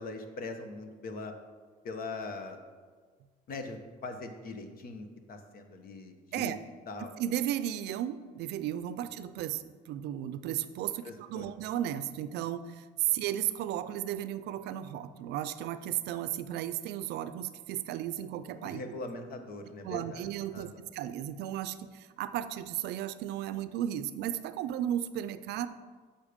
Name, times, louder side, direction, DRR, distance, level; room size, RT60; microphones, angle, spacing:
voice 1, 0.0-1.3 1.8-2.6 3.5-6.5 6.9-7.1 11.0-11.5 13.1-13.2 18.6-20.8, left 3 dB, 60° left, 6 dB, 1.1 m, -41 dB
voice 2, 7.2-18.8 19.8-25.7, right 11 dB, 80° right, 13 dB, 0.5 m, -34 dB
8.5 x 5.6 x 5.1 m, 1.5 s
cardioid pair, 110°, 17 cm